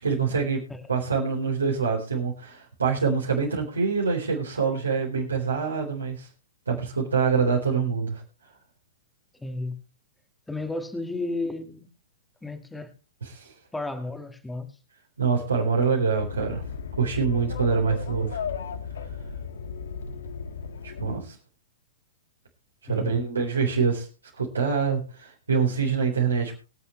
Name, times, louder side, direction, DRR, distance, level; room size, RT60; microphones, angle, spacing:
voice 1, 0.0-0.6 0.9-6.3 6.7-8.2 13.2-13.5 15.2-16.6 17.0-18.4 20.8-21.3 22.9-24.1 24.4-26.6, right 5 dB, 80° right, -2 dB, 4.1 m, -25 dB
voice 2, 9.4-9.8 10.5-11.9 12.4-12.9 13.7-14.8 22.9-23.2, left 2 dB, 5° left, 7 dB, 1.9 m, -33 dB
sound 1, 16.2-21.2, left 6 dB, 65° left, 1.5 m, -35 dB
24.5 x 8.2 x 3.2 m, 0.32 s
figure-of-eight pair, 105°, 0 cm